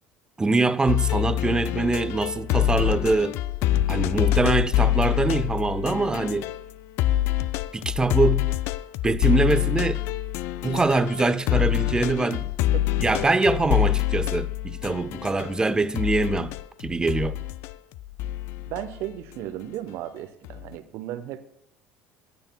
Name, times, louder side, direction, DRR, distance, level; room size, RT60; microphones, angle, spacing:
voice 1, 0.4-3.3 3.9-6.5 7.7-8.5 9.0-10.0 10.6-12.5 13.0-16.5 16.8-17.4, right 3 dB, 15° right, 0.6 m, -23 dB
sound 1, 0.9-6.7 7.0-15.6 15.9-19.1 20.4-20.7, left 13 dB, 60° left, 0.3 m, -26 dB
voice 2, 18.7-21.5, right 12 dB, 60° right, 0.8 m, -35 dB
15.5 x 9.7 x 2.2 m
hypercardioid pair, 65°, 5 cm